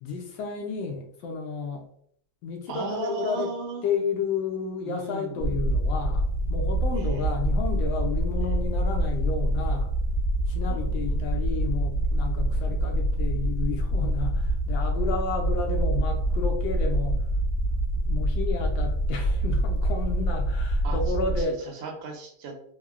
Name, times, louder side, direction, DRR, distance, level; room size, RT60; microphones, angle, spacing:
voice 1, 0.0-1.9 2.4-3.5 3.8-9.9 10.5-17.2 18.1-21.8, left 4 dB, 75° left, 3 dB, 1.2 m, -32 dB
voice 2, 2.7-3.9 4.8-5.7 6.9-7.3 8.4-8.6 10.6-11.3 12.5-12.9 20.8-21.0 21.8-22.7, right 3 dB, 75° right, 2 dB, 1.4 m, -37 dB
sound 1, 5.4-21.4, right 1 dB, 60° left, 0.6 m, -26 dB
3.6 x 2.0 x 2.3 m, 0.65 s
omnidirectional pair, 2.2 m